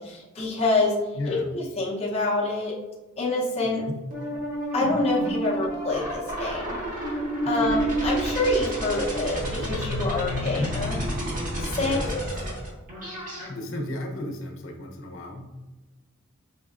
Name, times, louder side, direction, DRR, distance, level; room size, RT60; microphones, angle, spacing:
voice 1, 0.0-2.8 3.2-3.9 4.7-7.1 7.4-11.0 11.6-12.2, left 2 dB, 30° left, -5 dB, 0.8 m, -27 dB
voice 2, 1.1-1.5 3.6-4.0 7.4-7.8 10.4-10.7 11.8-12.1 13.5-15.5, left 1 dB, 65° left, 2 dB, 0.8 m, -34 dB
sound 1, 4.1-13.5, right 1 dB, 40° right, 1.4 m, -29 dB
5.1 x 3.3 x 2.5 m, 1.1 s
head